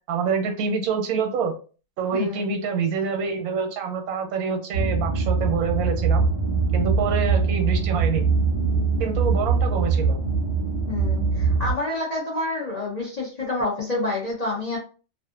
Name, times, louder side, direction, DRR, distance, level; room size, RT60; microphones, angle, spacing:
voice 1, 0.1-1.5 2.0-6.3 6.7-8.3 9.0-10.2, right 6 dB, 85° right, 5 dB, 1.1 m, -26 dB
voice 2, 2.1-2.5 10.9-14.8, left 2 dB, 50° left, -3 dB, 0.5 m, -28 dB
sound 1, 4.7-11.7, right 4 dB, 45° right, 0.4 m, -22 dB
2.5 x 2.4 x 2.4 m, 0.36 s
omnidirectional pair, 1.5 m